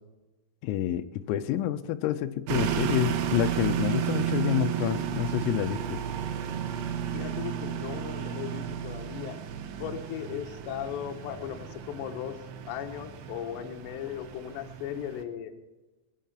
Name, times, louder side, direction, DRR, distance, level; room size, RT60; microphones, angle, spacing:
voice 1, 0.6-6.0, left 12 dB, 90° left, 10 dB, 3.4 m, -28 dB
sound 1, 2.5-15.2, right 9 dB, 75° right, 3.2 m, -33 dB
voice 2, 7.1-9.4 9.8-12.4 12.7-15.6, left 9 dB, 70° left, 5 dB, 2.9 m, -37 dB
19.5 x 9.5 x 5.8 m, 1.1 s
omnidirectional pair, 5.8 m